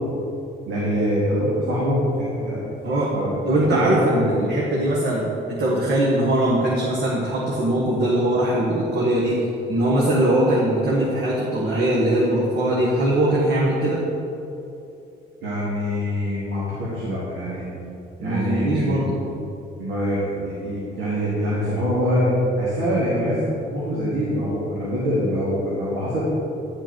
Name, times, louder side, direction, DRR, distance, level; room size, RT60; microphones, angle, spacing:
voice 1, 0.7-2.7 3.1-4.3 15.4-17.7 18.2-19.2 19.8-23.4 23.7-26.2, equal, 85° right, -8 dB, 1.9 m, -24 dB
voice 2, 2.8-3.1 3.4-14.0 18.2-19.1, right 1 dB, 60° right, -5 dB, 1.4 m, -21 dB
10.5 x 5.2 x 4.5 m, 2.8 s
cardioid pair, 90°, 20 cm